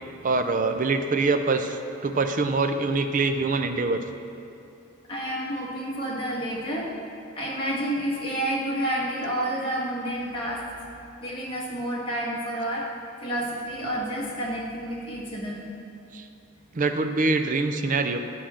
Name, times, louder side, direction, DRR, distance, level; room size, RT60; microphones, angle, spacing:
voice 1, 0.2-4.0 16.1-16.2 16.7-18.2, right 3 dB, 40° right, 7 dB, 0.5 m, -24 dB
voice 2, 5.1-6.9 7.4-10.6 11.2-12.8 13.2-15.6, right 1 dB, 25° left, -6 dB, 1.7 m, -29 dB
10.5 x 4.3 x 6.3 m, 2.8 s
head